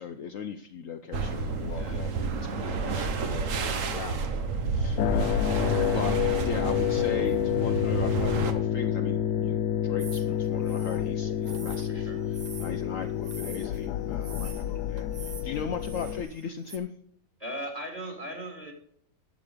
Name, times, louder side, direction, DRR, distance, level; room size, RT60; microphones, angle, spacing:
voice 1, 0.0-4.4 4.7-5.3 5.9-16.9, left 6 dB, 60° left, 7 dB, 1.0 m, -38 dB
sound 1, 1.1-8.5, right 4 dB, 55° right, 1.3 m, -30 dB
voice 2, 1.7-2.0 11.9-12.2 17.4-18.7, right 1 dB, 20° right, 2 dB, 2.5 m, -38 dB
sound 2, 5.0-16.2, left 10 dB, 80° left, 1.1 m, -29 dB
sound 3, 10.0-16.8, right 5 dB, 40° right, 0.6 m, -47 dB
11.5 x 7.3 x 5.0 m, 0.63 s
omnidirectional pair, 1.7 m